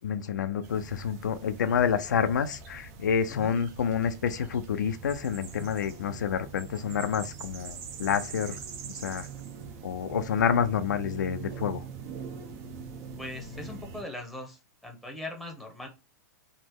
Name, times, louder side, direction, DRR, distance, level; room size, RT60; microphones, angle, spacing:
voice 1, 0.0-8.6 8.9-9.3 9.8-11.8, left 7 dB, 90° left, 0.4 m, -28 dB
sound 1, 0.6-14.0, right 6 dB, 50° right, 0.7 m, -43 dB
voice 2, 13.2-15.9, left 1 dB, ahead, 0.8 m, -40 dB
3.1 x 2.0 x 3.5 m
hypercardioid pair, 120°, 10 cm